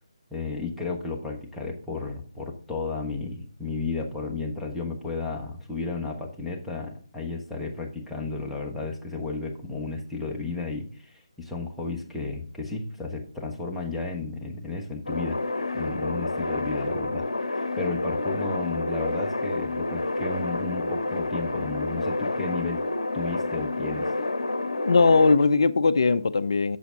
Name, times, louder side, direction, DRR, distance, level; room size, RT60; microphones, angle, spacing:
voice 1, 0.3-15.4 15.7-17.2 17.5-22.8 23.1-24.1, left 3 dB, 5° left, 1.2 m, -33 dB
sound 1, 15.1-25.4, left 2 dB, 70° left, 0.9 m, -29 dB
voice 2, 24.8-26.8, left 4 dB, 55° left, 0.5 m, -19 dB
8.5 x 7.0 x 3.8 m
figure-of-eight pair, 150°, 3 cm